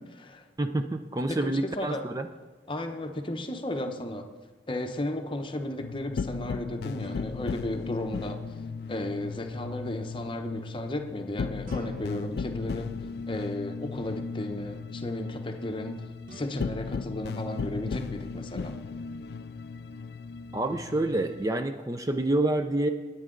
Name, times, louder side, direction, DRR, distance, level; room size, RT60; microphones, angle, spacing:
voice 1, 0.0-0.4 1.3-2.0 2.7-4.3 4.7-8.4 8.9-12.9 13.3-16.0 16.3-18.8, left 1 dB, 25° left, 6 dB, 0.8 m, -34 dB
voice 2, 0.6-2.3 20.5-22.9, right 2 dB, 20° right, 7 dB, 0.4 m, -28 dB
sound 1, 3.1-4.0 7.0-9.2 11.6-13.8 16.3-18.5, right 1 dB, 45° right, 1.1 m, -52 dB
sound 2, 5.8-21.5, left 5 dB, 55° left, 0.3 m, -36 dB
19.0 x 8.6 x 3.8 m, 1.4 s
head